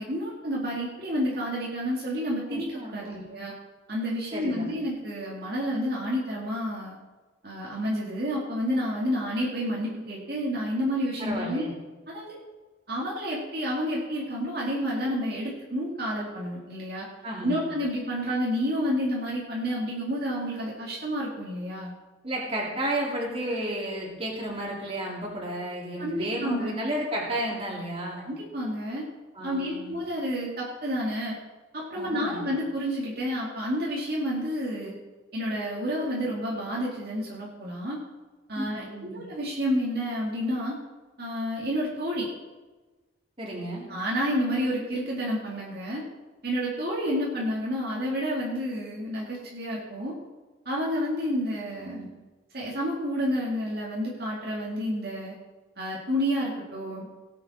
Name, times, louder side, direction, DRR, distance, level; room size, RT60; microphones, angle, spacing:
voice 1, 0.0-3.5 3.9-7.0 7.4-11.7 12.1-12.4 12.9-17.1 17.4-21.9 26.0-26.8 28.1-29.0 29.4-31.4 31.7-34.9 35.3-38.0 38.5-40.8 41.2-42.3 43.9-46.0 46.4-50.1 50.7-52.1 52.5-55.3 55.8-57.1, equal, 50° right, -5 dB, 2.2 m, -30 dB
voice 2, 2.5-3.2 4.3-4.7 11.2-11.7 17.2-17.6 22.2-28.3 29.3-29.9 32.0-32.5 38.6-39.2 43.4-43.8 51.8-52.0, right 1 dB, 30° right, -3 dB, 2.8 m, -32 dB
18.0 x 7.7 x 4.3 m, 1.2 s
head